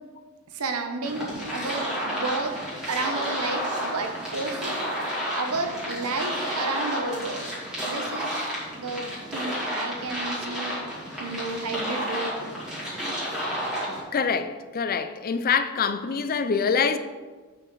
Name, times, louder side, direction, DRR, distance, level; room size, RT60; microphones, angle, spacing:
voice 1, 0.5-2.6 2.9-4.8 5.3-7.4 7.8-8.5 8.8-10.8 11.1-12.4, right 3 dB, 80° right, 1.0 m, -31 dB
sound 1, 1.0-14.0, equal, 5° right, 2.6 m, -31 dB
voice 2, 14.1-17.0, left 6 dB, 40° left, 0.4 m, -25 dB
8.4 x 5.8 x 3.9 m
head